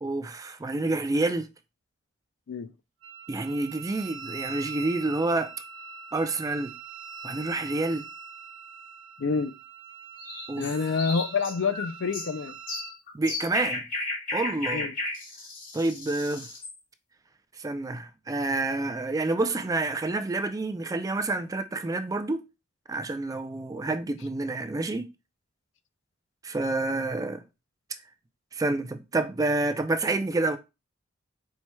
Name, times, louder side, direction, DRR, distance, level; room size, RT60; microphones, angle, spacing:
voice 1, 0.0-1.5 3.3-5.5 6.1-6.7 7.2-8.1 10.5-10.8 13.1-13.8 14.3-14.9 15.7-16.5 17.6-22.4 22.9-25.1 26.4-27.4 28.5-30.6, right 2 dB, 15° right, 0.3 m, -28 dB
Wind instrument woodwind instrument, 3.0-13.0, right 5 dB, 65° right, 1.1 m, -43 dB
voice 2, 9.2-9.5 10.6-12.5 14.7-14.9, left 5 dB, 65° left, 0.4 m, -27 dB
sound 1, 10.2-16.8, left 2 dB, 45° left, 1.3 m, -34 dB
4.4 x 4.3 x 2.2 m
head